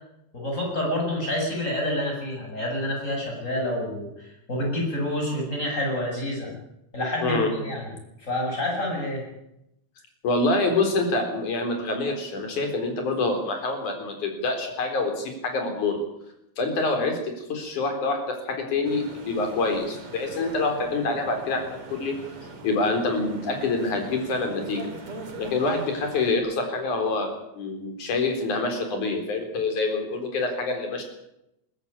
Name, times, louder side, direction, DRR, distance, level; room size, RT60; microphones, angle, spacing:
voice 1, 0.3-6.5 6.9-7.9 8.2-9.2, left 1 dB, 25° left, 0 dB, 7.6 m, -28 dB
voice 2, 10.2-16.0 16.6-22.2 22.6-24.8 25.4-31.0, left 3 dB, 80° left, 4 dB, 5.4 m, -26 dB
sound 1, 18.8-26.4, right 2 dB, 45° right, 3.9 m, -41 dB
21.5 x 14.0 x 9.7 m, 0.84 s
omnidirectional pair, 3.4 m